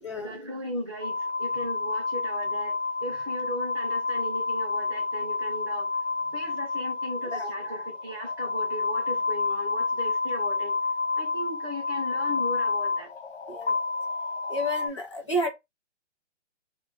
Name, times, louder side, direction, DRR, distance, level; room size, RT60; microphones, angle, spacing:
voice 1, 0.1-5.9 6.3-10.8 11.1-13.1, equal, 20° right, 0.5 m, -37 dB
sound 1, 1.0-14.9, left 3 dB, 70° left, 0.9 m, -29 dB
voice 2, 14.5-15.5, equal, 25° left, 0.6 m, -30 dB
2.2 x 2.1 x 3.7 m
hypercardioid pair, 170°, 37 cm